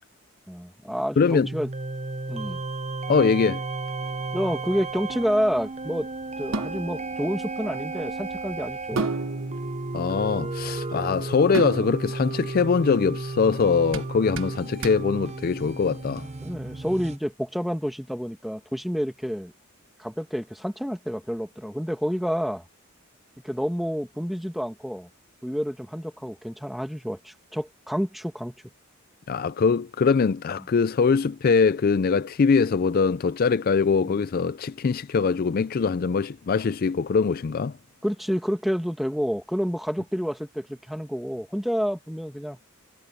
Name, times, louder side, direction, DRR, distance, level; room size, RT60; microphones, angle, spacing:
voice 1, 0.5-1.7 2.3-2.6 4.3-6.1 6.4-9.1 16.4-19.5 20.0-22.6 23.4-25.1 25.4-28.5 34.0-34.1 38.0-42.6, equal, ahead, 1.8 m, -29 dB
voice 2, 1.2-1.5 3.1-3.6 9.9-16.3 29.3-37.7, left 5 dB, 45° left, 0.4 m, -22 dB
sound 1, 1.4-17.2, right 3 dB, 35° right, 0.8 m, -33 dB
sound 2, 4.0-16.1, right 3 dB, 70° right, 1.2 m, -37 dB
head